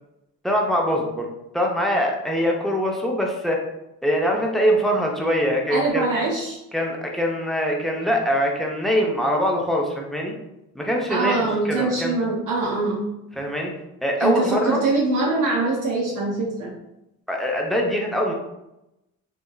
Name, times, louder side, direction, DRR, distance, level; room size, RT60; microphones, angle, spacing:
voice 1, 0.4-1.3 1.5-3.6 4.0-6.1 6.7-10.3 10.7-11.4 11.6-12.2 13.4-13.7 14.0-14.8 17.3-18.3, equal, ahead, -1 dB, 0.6 m, -23 dB
voice 2, 5.7-6.6 11.1-13.1 14.2-16.7, right 3 dB, 55° right, -4 dB, 0.7 m, -23 dB
2.7 x 2.2 x 2.2 m, 0.88 s
hypercardioid pair, 50°, 38 cm